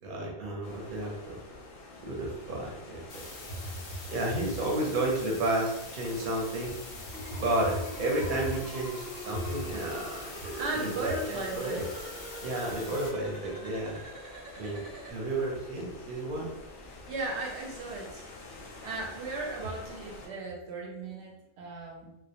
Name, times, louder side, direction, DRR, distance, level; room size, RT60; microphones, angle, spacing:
voice 1, 0.0-1.4 2.0-3.3 4.1-6.8 7.3-11.9 12.4-14.0 14.6-16.5, right 1 dB, 60° right, -1 dB, 0.7 m, -32 dB
sound 1, 0.6-20.3, left 2 dB, 60° left, 0.6 m, -48 dB
sound 2, 3.1-13.1, left 3 dB, 85° left, 0.9 m, -45 dB
sound 3, 7.1-15.1, equal, 30° right, 0.4 m, -44 dB
voice 2, 10.6-11.9 17.1-18.2 18.8-22.2, right 3 dB, 90° right, -1 dB, 0.9 m, -36 dB
2.1 x 2.1 x 2.8 m, 0.91 s
omnidirectional pair, 1.1 m